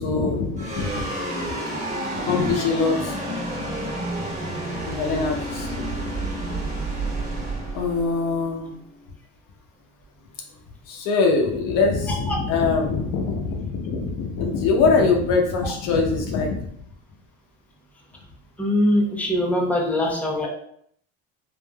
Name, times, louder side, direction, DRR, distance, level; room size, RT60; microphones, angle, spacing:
voice 1, 0.0-1.5 2.1-3.2 4.8-5.9 7.7-8.8 10.9-16.7 20.4-20.5, left 4 dB, 70° left, 1 dB, 0.7 m, -23 dB
sound 1, 0.6-9.1, right 1 dB, 20° right, 1.2 m, -30 dB
voice 2, 18.6-20.5, left 1 dB, 5° left, -2 dB, 0.6 m, -22 dB
3.5 x 2.4 x 2.2 m, 0.67 s
supercardioid pair, 85°, 34 cm